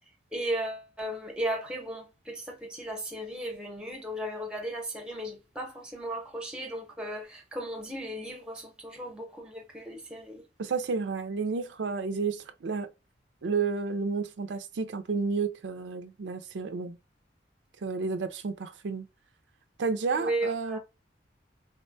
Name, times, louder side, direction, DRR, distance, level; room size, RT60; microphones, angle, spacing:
voice 1, 0.3-10.4 20.1-20.8, right 1 dB, 5° right, 0.7 m, -35 dB
voice 2, 10.6-12.9 13.4-17.0 17.8-19.1 19.8-20.8, right 4 dB, 75° right, 0.4 m, -31 dB
3.9 x 2.2 x 2.6 m
head